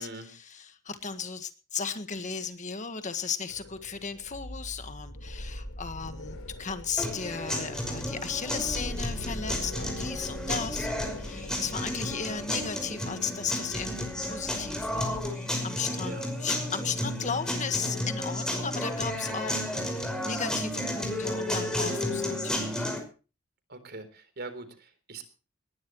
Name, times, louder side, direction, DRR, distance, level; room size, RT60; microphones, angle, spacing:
voice 1, 0.0-22.9, left 6 dB, 35° left, 8 dB, 1.7 m, -36 dB
sound 1, 3.5-15.3, left 1 dB, 85° left, 4.6 m, -42 dB
sound 2, 7.0-23.0, left 1 dB, 5° left, 5.7 m, -32 dB
voice 2, 23.7-25.2, right 2 dB, 50° right, 10 dB, 3.8 m, -42 dB
20.5 x 20.0 x 3.1 m, 0.36 s
head